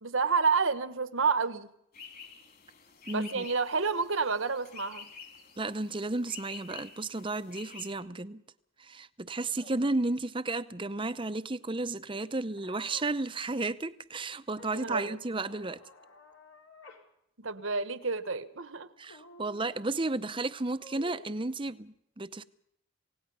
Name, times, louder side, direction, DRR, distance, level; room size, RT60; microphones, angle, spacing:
voice 1, 0.0-1.7 3.1-5.0 14.7-15.2 17.4-18.9, right 5 dB, 65° right, 1.2 m, -29 dB
sound 1, 1.9-7.9, left 6 dB, 45° left, 3.9 m, -50 dB
voice 2, 3.1-3.5 5.6-8.4 8.8-15.8 19.0-22.4, right 2 dB, 25° right, 0.7 m, -33 dB
sound 2, 9.6-9.8 12.6-13.1 14.6-15.2 15.5-17.0 17.4-17.5 19.1-19.6 20.8-21.3, left 2 dB, 75° left, 3.8 m, -52 dB
27.5 x 17.5 x 5.5 m
head